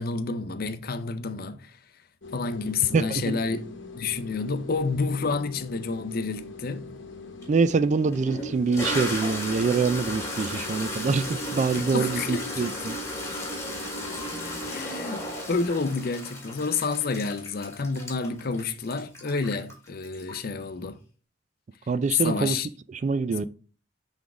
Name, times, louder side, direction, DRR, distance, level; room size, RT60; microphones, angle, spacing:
voice 1, 0.0-1.8 2.3-3.7 3.9-6.9 11.7-12.7 14.7-21.0 22.2-22.7 23.3-23.5, left 4 dB, 50° left, 0.5 m, -29 dB
sound 1, 2.2-14.9, left 3 dB, 75° left, 1.0 m, -43 dB
voice 2, 2.9-3.4 7.5-13.0 21.9-22.6 23.0-23.4, right 4 dB, 40° right, 0.3 m, -25 dB
Toilet flush, 7.4-7.5 8.1-20.6, left 1 dB, 15° left, 1.6 m, -35 dB
6.0 x 3.6 x 4.8 m
head